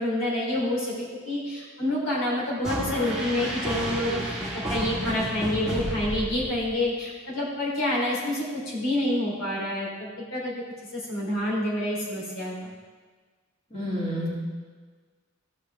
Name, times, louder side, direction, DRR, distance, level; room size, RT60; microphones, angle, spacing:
voice 1, 0.0-10.5 10.9-12.7, left 1 dB, 65° left, -4 dB, 3.2 m, -28 dB
sound 1, 2.6-6.9, equal, 5° right, 1.5 m, -32 dB
voice 2, 13.7-14.3, equal, 30° left, -7 dB, 2.8 m, -29 dB
14.5 x 6.3 x 3.4 m, 1.5 s
head